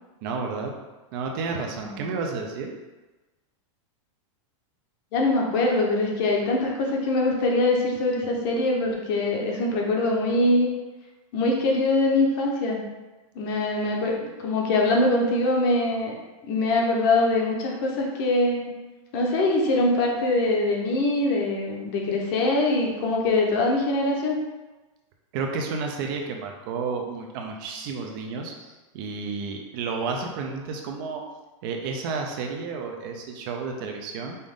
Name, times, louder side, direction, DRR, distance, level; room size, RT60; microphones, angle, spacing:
voice 1, 0.2-0.7 1.1-2.7 25.3-31.2 31.6-34.4, right 4 dB, 40° right, 2 dB, 0.6 m, -31 dB
voice 2, 1.8-2.1 5.1-10.7 11.3-12.8 13.3-16.2 16.5-18.7 19.1-24.4, left 2 dB, 40° left, 0 dB, 0.9 m, -23 dB
5.4 x 2.5 x 3.6 m, 1.2 s
supercardioid pair, 160°, 17 cm